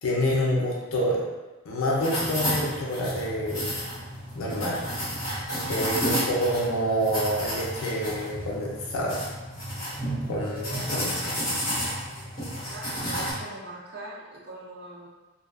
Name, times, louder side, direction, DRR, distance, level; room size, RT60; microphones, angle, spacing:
voice 1, 0.0-1.2 1.7-3.8 4.3-4.8 5.6-9.2 10.3-11.1, equal, 80° left, -3 dB, 0.4 m, -27 dB
sound 1, 2.0-13.3, equal, 40° left, 1.0 m, -31 dB
voice 2, 10.2-11.6 12.7-15.1, right 1 dB, 50° right, -2 dB, 0.4 m, -42 dB
2.5 x 2.3 x 2.3 m, 1.2 s
head